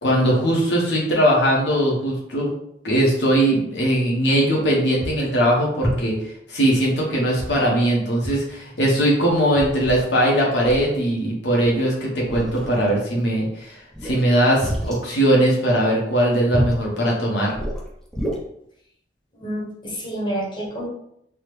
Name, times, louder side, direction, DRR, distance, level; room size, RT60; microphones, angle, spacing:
voice 1, 0.0-2.5 2.8-6.2 6.5-17.5, right 1 dB, 75° left, -3 dB, 0.8 m, -20 dB
sound 1, 4.5-4.6 5.0-5.3 5.8-6.2 7.4-7.9 8.2-8.4 8.7-8.8 9.3-10.1 10.6-10.9 11.6-11.8 12.2-12.8 13.9-15.0 16.5-16.9 17.5-18.4, equal, 5° left, 0.5 m, -28 dB
voice 2, 19.3-20.9, right 1 dB, 30° left, -5 dB, 0.8 m, -28 dB
3.4 x 2.0 x 3.0 m, 0.74 s
head